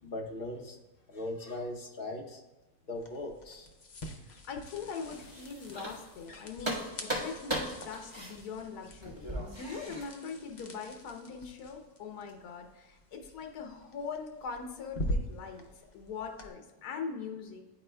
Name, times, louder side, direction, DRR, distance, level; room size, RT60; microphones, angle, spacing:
voice 1, 0.0-0.8 1.1-2.4 2.9-3.7, left 1 dB, 45° left, 0 dB, 0.9 m, -39 dB
sound 1, 2.9-16.5, equal, 60° left, 0.4 m, -44 dB
voice 2, 4.3-17.6, left 5 dB, 80° left, 4 dB, 1.3 m, -42 dB
sound 2, 5.0-6.3 6.6-10.0, right 1 dB, 20° right, 1.2 m, -38 dB
10.5 x 4.3 x 2.2 m, 1.1 s
omnidirectional pair, 1.6 m